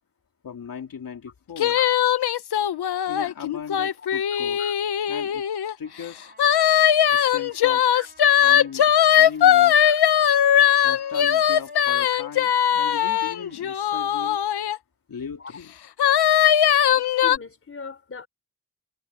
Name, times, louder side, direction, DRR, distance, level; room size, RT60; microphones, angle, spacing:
voice 1, 0.4-1.8 3.1-4.6 5.1-5.5 5.8-6.3 7.1-7.9 8.4-9.8 10.8-14.4 15.1-15.7, left 7 dB, 55° left, 2.7 m, -38 dB
sound 1, 1.6-5.7 6.4-14.8 16.0-17.4, left 10 dB, 75° left, 0.9 m, -20 dB
Trumpet, 5.8-14.2, right 3 dB, 25° right, 6.6 m, -54 dB
voice 2, 16.9-18.3, left 4 dB, 35° left, 3.8 m, -39 dB
wide cardioid pair, 160°, 39 cm